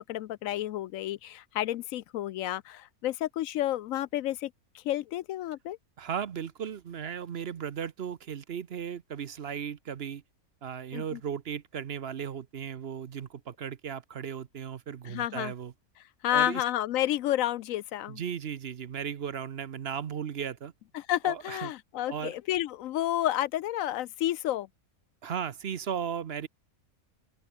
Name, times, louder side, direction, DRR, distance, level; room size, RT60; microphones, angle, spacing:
voice 1, 0.1-4.5 4.7-5.8 10.9-11.2 15.1-15.5 16.2-18.2 20.9-24.7, left 13 dB, 75° left, 0.9 m, -30 dB
voice 2, 6.0-10.2 10.6-15.7 16.3-16.6 18.1-20.7 21.2-21.7 22.1-22.4 25.2-26.5, right 8 dB, 50° right, 0.9 m, -36 dB
open air
omnidirectional pair, 1.5 m